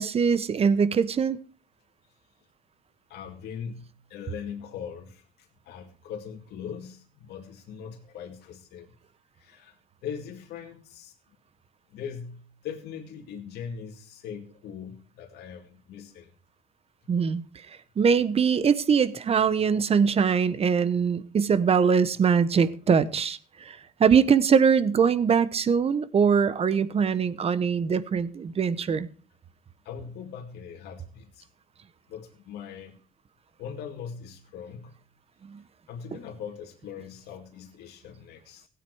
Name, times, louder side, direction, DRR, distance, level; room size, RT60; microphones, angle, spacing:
voice 1, 0.0-1.4 17.1-17.4 18.0-23.4 23.7-29.1 35.4-35.6, right 6 dB, 35° right, 1.0 m, -22 dB
voice 2, 3.1-8.9 9.4-9.8 10.0-11.1 11.9-16.3 29.8-31.5 32.1-33.0 33.6-35.0 35.9-38.7, left 7 dB, 75° left, 2.4 m, -40 dB
16.5 x 9.0 x 4.8 m
cardioid pair, 110°, 17 cm